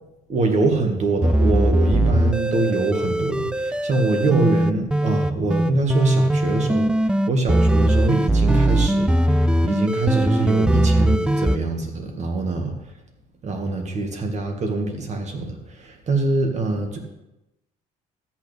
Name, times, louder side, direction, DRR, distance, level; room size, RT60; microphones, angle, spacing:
voice 1, 0.3-12.7 13.4-17.0, right 3 dB, 45° right, 3 dB, 1.9 m, -24 dB
sound 1, 1.2-11.6, right 1 dB, 5° right, 0.3 m, -20 dB
13.0 x 8.7 x 3.4 m, 0.93 s
cardioid pair, 110°, 17 cm